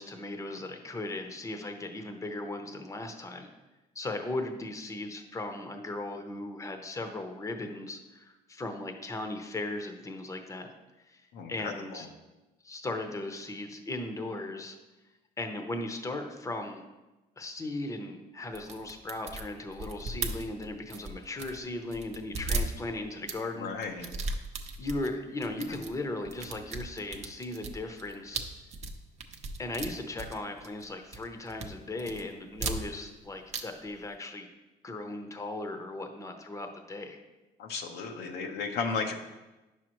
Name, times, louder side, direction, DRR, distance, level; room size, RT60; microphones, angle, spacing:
voice 1, 0.0-3.5 3.9-10.7 11.1-12.1 12.6-14.8 15.4-16.8 17.4-23.7 24.8-28.5 29.6-34.5 34.8-37.2, left 2 dB, 20° left, 5 dB, 0.8 m, -37 dB
voice 2, 11.3-12.1 23.6-24.1 37.6-39.1, left 5 dB, 80° left, 3 dB, 0.8 m, -34 dB
sound 1, 18.5-21.6 21.9-23.4 23.8-25.1 25.4-25.9 26.3-30.9 31.1-31.7 32.0-33.2 33.5-33.6 33.9-34.0, right 3 dB, 40° right, 0.8 m, -36 dB
9.3 x 6.3 x 3.0 m, 1.1 s
cardioid pair, 110°, 17 cm